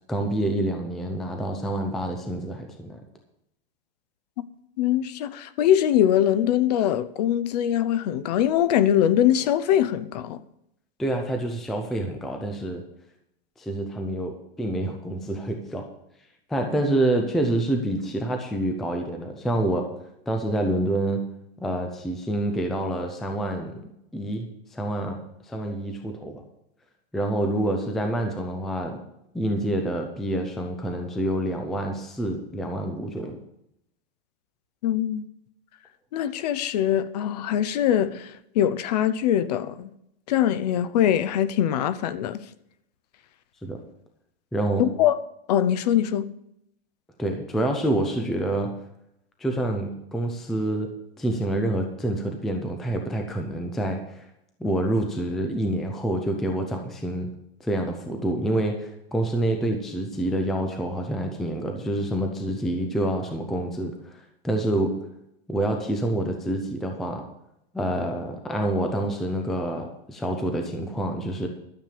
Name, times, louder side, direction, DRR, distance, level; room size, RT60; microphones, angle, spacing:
voice 1, 0.1-3.0 11.0-12.8 13.6-15.8 16.5-19.8 20.3-21.2 21.6-23.8 24.1-24.5 24.7-25.2 25.5-26.4 27.1-29.0 29.3-33.4 43.6-43.8 44.5-44.8 47.2-48.7 49.4-50.9 51.2-54.3 54.6-57.3 57.6-64.2 64.4-64.9 65.5-67.2 67.7-71.5, right 1 dB, ahead, 0.4 m, -27 dB
voice 2, 4.8-10.4 34.8-35.2 36.1-39.9 40.3-42.4 44.8-45.2 45.5-46.3, left 10 dB, 40° left, 0.7 m, -22 dB
12.5 x 7.3 x 6.6 m
supercardioid pair, 165°, 30 cm